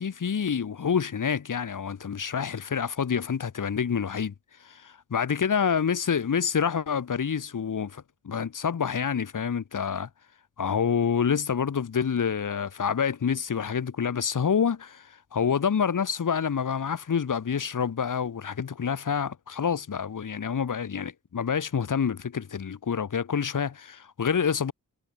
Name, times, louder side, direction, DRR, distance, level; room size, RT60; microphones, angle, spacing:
voice 1, 0.0-4.3 4.6-10.1 10.6-24.7, left 7 dB, 60° left, 2.7 m, -27 dB
wide cardioid pair, 125°, 35 cm